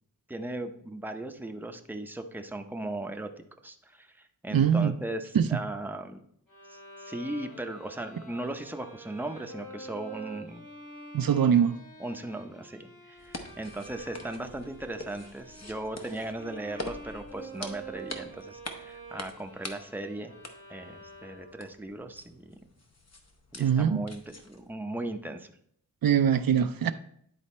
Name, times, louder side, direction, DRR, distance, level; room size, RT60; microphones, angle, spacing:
voice 1, 0.3-3.3 3.6-6.2 6.7-10.7 11.4-11.6 12.0-20.3 20.7-22.6 23.5-25.5, right 2 dB, 5° right, 0.6 m, -38 dB
voice 2, 4.5-4.9 5.3-5.4 11.1-11.7 23.6-24.0 26.0-26.9, right 8 dB, 75° right, 0.5 m, -22 dB
Bowed string instrument, 6.5-21.8, right 2 dB, 65° left, 2.9 m, -47 dB
sound 1, 13.2-24.7, left 2 dB, 45° left, 0.9 m, -45 dB
10.0 x 4.1 x 4.2 m
wide cardioid pair, 80°, 35 cm